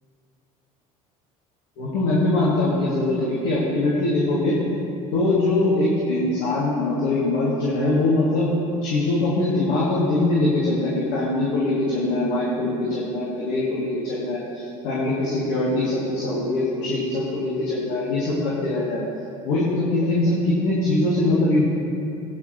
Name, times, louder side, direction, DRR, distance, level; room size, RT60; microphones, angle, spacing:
voice 1, 1.8-4.6 5.1-8.5 8.8-19.0 19.4-21.6, left 2 dB, 70° left, -7 dB, 2.8 m, -22 dB
18.0 x 9.6 x 3.2 m, 2.6 s
hypercardioid pair, 80°, 18 cm